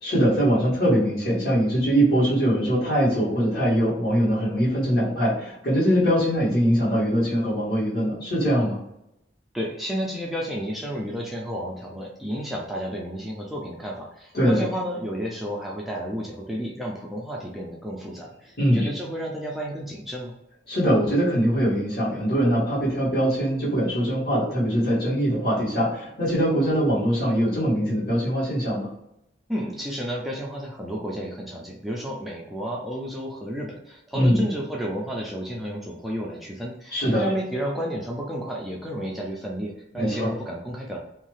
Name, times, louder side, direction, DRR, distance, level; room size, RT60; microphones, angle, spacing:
voice 1, 0.0-8.8 14.3-14.6 18.6-18.9 20.7-28.9 34.1-34.4 36.9-37.2 39.9-40.3, equal, 60° left, -7 dB, 1.5 m, -22 dB
voice 2, 9.5-20.3 29.5-41.0, equal, ahead, -3 dB, 0.3 m, -31 dB
2.7 x 2.3 x 3.1 m, 0.83 s
head